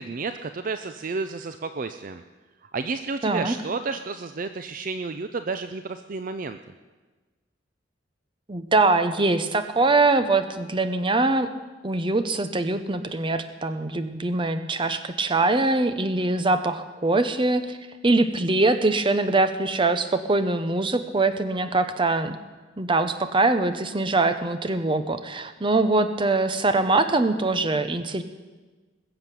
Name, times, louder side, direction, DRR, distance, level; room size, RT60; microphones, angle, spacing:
voice 1, 0.0-2.2 2.7-6.6, right 4 dB, 45° right, 9 dB, 0.5 m, -31 dB
voice 2, 3.2-3.6 8.5-11.5 11.8-17.8 18.0-22.4 22.8-28.2, right 2 dB, 25° right, 10 dB, 0.8 m, -23 dB
21.0 x 7.9 x 7.0 m, 1.3 s
head